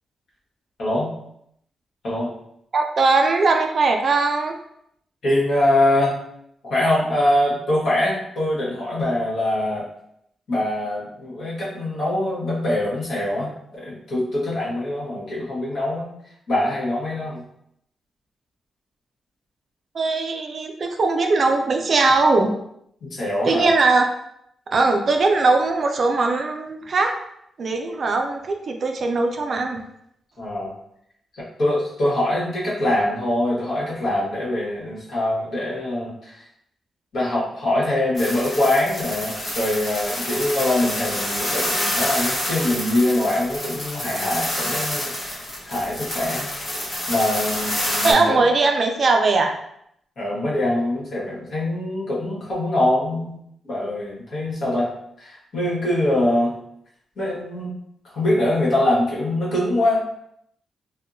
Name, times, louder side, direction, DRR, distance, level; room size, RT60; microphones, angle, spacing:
voice 1, 0.8-1.1 2.0-2.3 5.2-6.1 6.6-9.9 10.5-16.1 16.5-17.4 23.0-23.6 30.4-30.7 31.3-36.4 37.1-45.1 45.6-46.5 47.1-48.4 50.2-53.4 53.6-54.9 55.2-56.5 57.2-57.7 58.1-60.0, left 1 dB, 65° left, -7 dB, 1.3 m, -23 dB
voice 2, 2.7-4.6 19.9-22.6 23.4-24.1 24.7-27.2 27.6-29.8 48.0-49.6, right 3 dB, 40° right, 4 dB, 0.3 m, -20 dB
sound 1, 38.2-48.1, left 1 dB, 30° left, 1.1 m, -28 dB
3.5 x 2.2 x 2.6 m, 0.74 s
wide cardioid pair, 155°, 0 cm